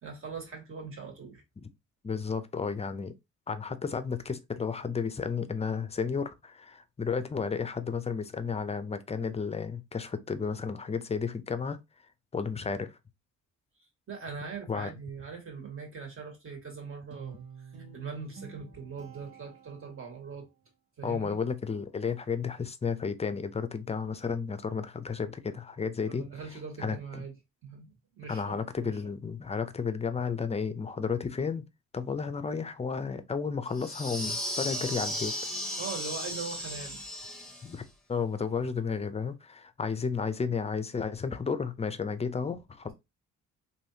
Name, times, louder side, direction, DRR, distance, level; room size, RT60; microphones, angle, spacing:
voice 1, 0.0-1.4 14.1-17.4 17.9-20.5 21.0-21.4 26.1-27.3 27.6-28.9 35.8-37.0, right 5 dB, 45° right, 1.8 m, -41 dB
voice 2, 2.0-3.1 3.5-11.8 12.3-12.9 14.7-14.9 21.0-26.3 26.8-27.0 28.3-31.6 31.9-35.3 37.6-37.8 38.1-42.9, left 5 dB, 20° left, 0.5 m, -32 dB
Guitar, 17.1-20.4, right 6 dB, 70° right, 1.4 m, -50 dB
sound 1, 33.7-37.8, equal, ahead, 0.8 m, -35 dB
3.3 x 2.7 x 2.7 m
cardioid pair, 90°, 30 cm